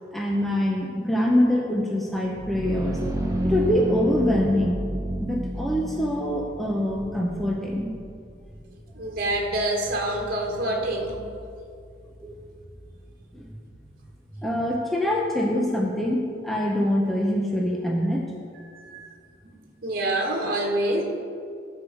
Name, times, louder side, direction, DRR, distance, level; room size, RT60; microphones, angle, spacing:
voice 1, 0.1-3.0 3.4-4.8 5.2-7.9 12.2-12.3 13.3-13.5 14.4-18.3, left 1 dB, ahead, -1 dB, 0.7 m, -24 dB
sound 1, 2.1-13.8, equal, 15° right, 1.1 m, -32 dB
voice 2, 8.9-11.2 18.6-19.0 19.4-19.6 19.8-21.0, right 1 dB, 50° right, 0 dB, 1.5 m, -26 dB
12.0 x 4.7 x 6.4 m, 2.3 s
head